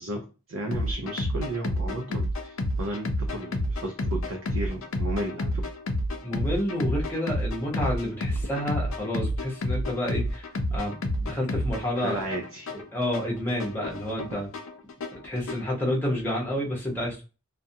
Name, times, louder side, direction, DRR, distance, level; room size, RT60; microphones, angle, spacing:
voice 1, 0.0-5.6 12.0-12.7, right 1 dB, 70° right, 2 dB, 0.5 m, -34 dB
sound 1, 0.7-15.7, left 1 dB, 70° left, 0.5 m, -30 dB
voice 2, 6.2-12.2 12.7-14.5 15.2-17.2, left 1 dB, 10° left, -3 dB, 0.8 m, -29 dB
2.4 x 2.0 x 2.7 m, 0.31 s
head